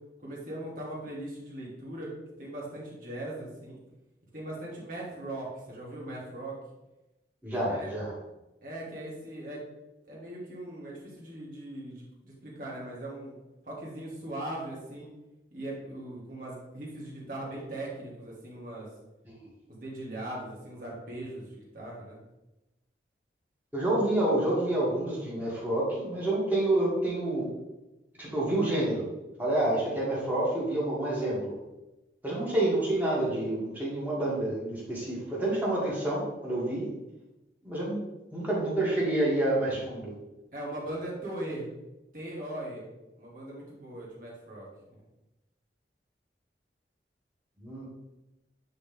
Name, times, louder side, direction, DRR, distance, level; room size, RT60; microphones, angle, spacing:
voice 1, 0.2-2.1 2.4-3.8 4.3-6.6 7.6-7.9 8.6-9.6 10.1-13.3 13.7-15.1 15.5-18.9 19.7-22.2 40.5-41.7 42.1-42.9 43.2-45.0, right 1 dB, 50° right, -5 dB, 2.5 m, -39 dB
voice 2, 7.4-8.1 19.2-19.5 23.7-27.5 28.2-29.0 29.4-31.5 32.2-36.9 37.6-38.0 38.3-40.1 47.6-47.8, right 1 dB, 10° right, -7 dB, 2.5 m, -28 dB
9.3 x 4.2 x 3.7 m, 0.99 s
head